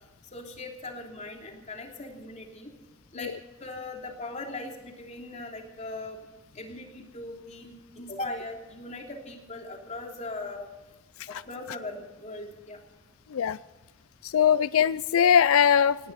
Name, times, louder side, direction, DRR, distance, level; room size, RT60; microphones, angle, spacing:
voice 1, 0.3-2.7 3.1-3.3 3.6-6.2 6.5-10.6 11.3-12.8, left 2 dB, 35° left, 1 dB, 3.2 m, -39 dB
voice 2, 14.3-16.1, left 8 dB, 85° left, 17 dB, 0.4 m, -21 dB
19.5 x 17.0 x 4.1 m, 1.1 s
head